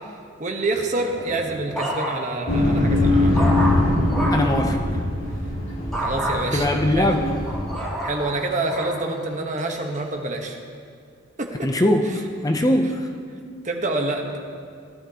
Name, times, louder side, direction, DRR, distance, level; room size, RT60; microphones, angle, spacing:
voice 1, 0.4-3.5 6.0-7.1 8.0-10.6 11.4-11.7 12.0-12.2 13.6-14.3, right 2 dB, 40° right, 2 dB, 1.1 m, -27 dB
sound 1, 1.1-2.4 2.9-4.5 5.9-6.4 7.0-8.9 9.6-10.0, right 1 dB, 5° left, 2.9 m, -29 dB
sound 2, 2.5-7.7, left 1 dB, 80° left, 2.0 m, -22 dB
voice 2, 4.3-4.8 6.5-7.3 11.6-12.0 12.4-13.1, left 1 dB, 20° left, 4 dB, 0.5 m, -21 dB
17.0 x 11.5 x 2.8 m, 2.2 s
head